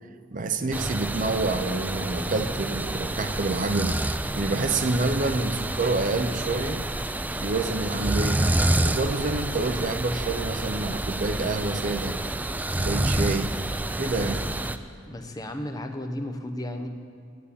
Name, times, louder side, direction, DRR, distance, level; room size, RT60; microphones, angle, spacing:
voice 1, 0.3-4.0 4.4-6.8 7.4-8.5 8.8-12.2 12.8-13.6 14.0-14.4, right 3 dB, 45° right, 9 dB, 0.7 m, -28 dB
sound 1, 0.7-14.8, right 1 dB, 10° right, 0.3 m, -28 dB
voice 2, 15.1-16.9, left 1 dB, 20° left, 5 dB, 0.9 m, -33 dB
9.3 x 8.6 x 8.5 m, 2.3 s
head